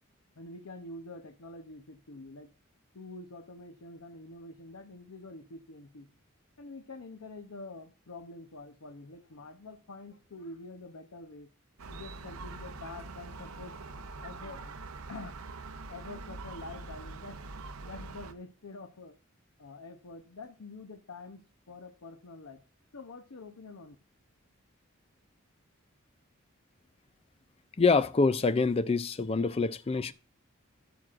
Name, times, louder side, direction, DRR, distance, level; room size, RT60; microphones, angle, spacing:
voice 1, 0.4-2.5 2.9-6.1 6.6-11.5 11.9-13.8 14.2-15.4 15.9-17.4 17.8-19.2 19.6-22.6 22.9-24.0, left 2 dB, 85° left, 0.8 m, -46 dB
Gull seagull, 11.8-18.3, right 3 dB, 85° right, 0.7 m, -44 dB
voice 2, 27.8-30.1, left 4 dB, 25° left, 0.4 m, -26 dB
15.0 x 6.1 x 2.5 m
head